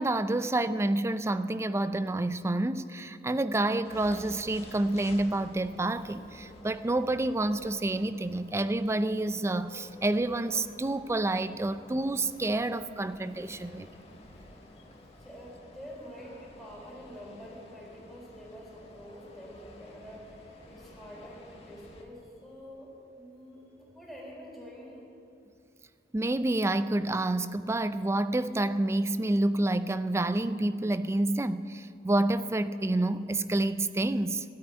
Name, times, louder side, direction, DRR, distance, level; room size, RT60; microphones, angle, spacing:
voice 1, 0.0-13.9 26.1-34.4, right 2 dB, 15° right, 0.4 m, -28 dB
sound 1, 3.8-22.0, left 1 dB, 35° left, 1.6 m, -51 dB
voice 2, 15.2-25.1, equal, ahead, 3.9 m, -47 dB
13.5 x 8.6 x 9.0 m
head